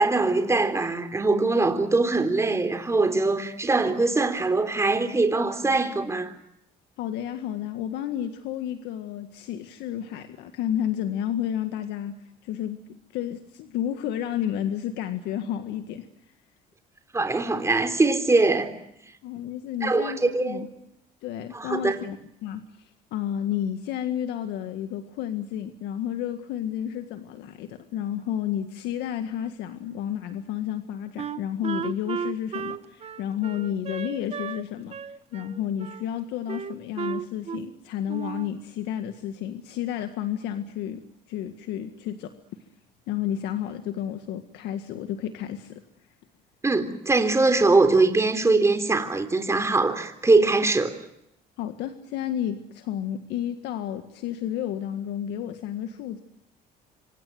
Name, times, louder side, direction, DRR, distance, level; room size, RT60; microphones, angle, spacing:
voice 1, 0.0-6.3 17.1-18.7 19.8-20.6 21.5-22.0 46.6-50.9, right 3 dB, 15° right, 3.7 m, -22 dB
voice 2, 7.0-12.2 12.4-12.8 13.1-16.1 19.2-20.7 21.2-35.0 35.3-41.0 41.3-42.3 43.1-45.8 51.6-56.2, left 10 dB, 85° left, 1.8 m, -31 dB
Wind instrument woodwind instrument, 31.2-34.6 34.9-36.0 36.5-37.8 38.1-38.6, right 7 dB, 35° right, 1.5 m, -34 dB
26.5 x 25.0 x 7.8 m
cardioid pair, 110°, 17 cm